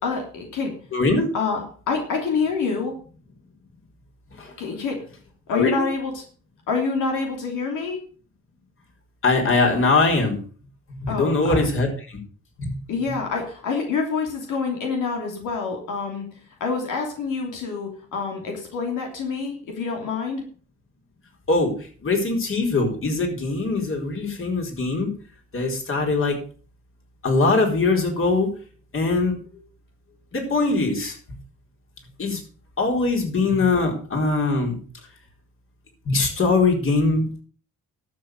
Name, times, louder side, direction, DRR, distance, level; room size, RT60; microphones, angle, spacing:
voice 1, 0.0-0.7 1.3-2.9 4.6-5.0 5.5-6.2 6.7-8.0 11.1-11.6 12.9-16.3 16.6-20.4, left 4 dB, 85° left, 1 dB, 3.2 m, -27 dB
voice 2, 0.9-1.3 4.4-4.5 5.5-5.7 9.2-10.4 10.9-12.2 12.6-12.8 21.5-25.1 25.5-26.4 27.2-28.5 28.9-29.4 30.3-31.1 32.2-32.4 32.8-34.8 36.0-37.4, left 3 dB, 45° left, 2 dB, 4.5 m, -22 dB
12.0 x 7.2 x 6.5 m, 0.42 s
cardioid pair, 90°, 30 cm